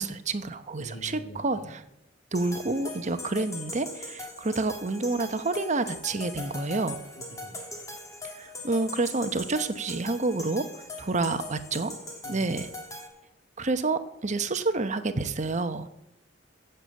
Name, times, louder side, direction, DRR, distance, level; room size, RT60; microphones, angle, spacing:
voice 1, 0.0-1.8 2.3-7.0 8.3-11.9 12.3-12.7 13.6-15.9, right 3 dB, 40° right, 10 dB, 0.9 m, -29 dB
voice 2, 0.8-1.4 7.2-7.6 12.2-12.5, right 1 dB, 80° left, 0 dB, 2.2 m, -43 dB
sound 1, 2.3-13.1, left 2 dB, 15° left, 2.7 m, -41 dB
16.0 x 6.9 x 7.6 m, 0.83 s
head